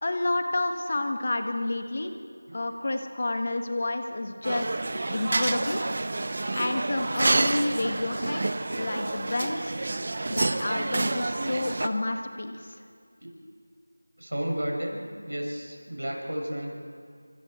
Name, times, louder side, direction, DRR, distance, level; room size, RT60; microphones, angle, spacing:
voice 1, 0.0-2.1 2.5-5.8 6.5-9.8 10.3-12.8, left 2 dB, 40° left, 5 dB, 1.7 m, -30 dB
sound 1, 4.4-11.9, right 2 dB, 40° right, 0.9 m, -28 dB
voice 2, 14.2-16.7, equal, 85° right, 0 dB, 6.4 m, -32 dB
26.0 x 25.5 x 4.5 m, 2.2 s
figure-of-eight pair, 175°, 0 cm